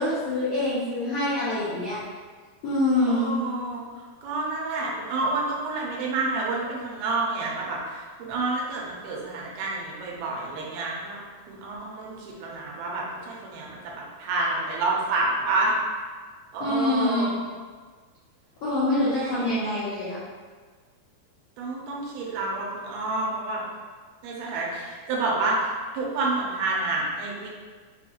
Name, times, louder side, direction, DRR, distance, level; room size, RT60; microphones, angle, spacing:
voice 1, 0.0-2.0 2.6-3.3 16.6-17.3 18.6-20.2, left 2 dB, 85° left, -11 dB, 1.4 m, -25 dB
voice 2, 3.1-3.8 4.2-11.2 11.5-15.7 16.5-17.4 18.9-19.6 21.6-23.6 24.2-27.5, right 3 dB, 85° right, -3 dB, 2.7 m, -29 dB
6.6 x 3.0 x 2.4 m, 1.5 s
omnidirectional pair, 4.3 m